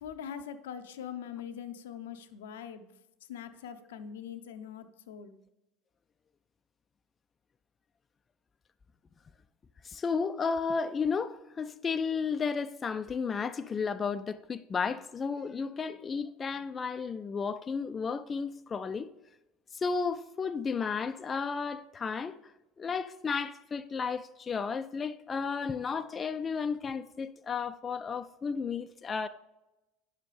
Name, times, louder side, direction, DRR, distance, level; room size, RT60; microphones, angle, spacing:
voice 1, 0.0-2.9 3.3-5.3, left 8 dB, 80° left, 0.6 m, -42 dB
voice 2, 9.8-19.1 19.7-22.4 22.8-29.3, left 5 dB, 30° left, 0.3 m, -33 dB
9.5 x 6.8 x 3.3 m
hypercardioid pair, 75°, 0 cm